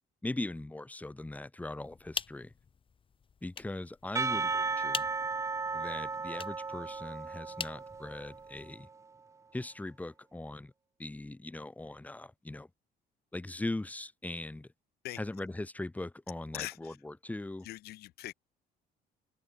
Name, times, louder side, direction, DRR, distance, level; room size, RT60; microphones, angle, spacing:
voice 1, 0.2-2.5 3.4-5.1 5.7-8.9 9.5-10.7 11.0-12.7 13.3-14.7 15.2-17.7, left 2 dB, 10° left, 1.3 m, -40 dB
sound 1, 1.8-8.7, left 6 dB, 30° left, 1.2 m, -44 dB
Percussion / Church bell, 4.2-8.7, right 4 dB, 20° right, 0.6 m, -35 dB
voice 2, 16.5-17.0 17.6-18.3, left 16 dB, 70° left, 0.6 m, -41 dB
cardioid pair, 110°, 17 cm